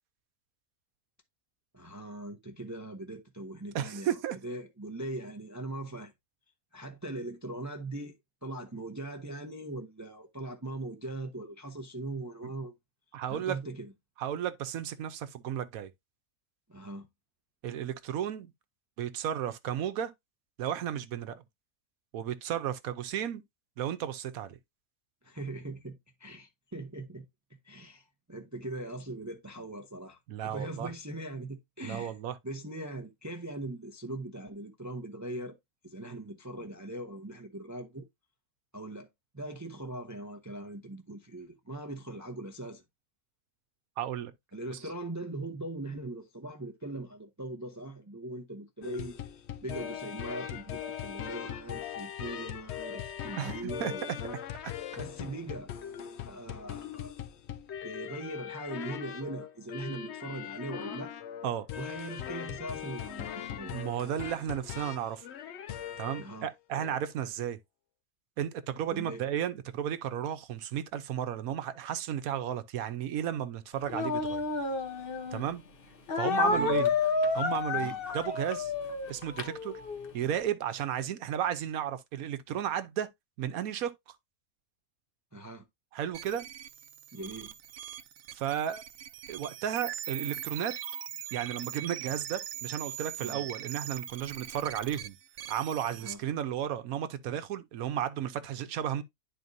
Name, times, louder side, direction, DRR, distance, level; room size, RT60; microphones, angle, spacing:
voice 1, 1.7-6.1 6.7-8.1 8.4-12.7 13.3-13.9 16.7-17.1 25.2-27.3 27.6-32.1 32.4-35.6 35.8-38.0 38.7-39.1 39.3-42.8 44.5-49.3 49.6-54.4 54.9-55.7 56.3-57.2 57.8-61.1 61.8-63.8 66.2-66.5 68.9-69.2 76.3-76.9 77.7-78.0 85.3-85.6 87.1-87.5 93.2-93.4 96.0-96.2, right 2 dB, 15° right, 0.6 m, -40 dB
voice 2, 3.7-4.4 13.1-13.6 14.2-15.9 17.6-18.5 19.0-20.1 20.6-21.4 22.1-23.4 23.8-24.6 30.3-30.9 31.8-32.3 44.0-44.3 44.7-44.8 53.4-54.2 61.4-61.7 63.7-65.2 66.0-67.6 68.4-74.4 75.3-75.6 76.2-76.9 77.3-78.7 79.1-79.7 80.1-83.1 83.4-83.9 85.9-86.5 88.3-88.8 89.3-90.7 91.3-95.2 95.5-99.0, right 10 dB, 80° right, 1.2 m, -33 dB
sound 1, 48.8-66.4 66.7-67.0, left 10 dB, 65° left, 0.7 m, -40 dB
Speech, 73.9-75.5 76.1-80.1, left 4 dB, 45° left, 1.0 m, -30 dB
sound 2, 86.1-96.1, right 10 dB, 65° right, 0.9 m, -41 dB
11.0 x 4.3 x 2.6 m
omnidirectional pair, 1.5 m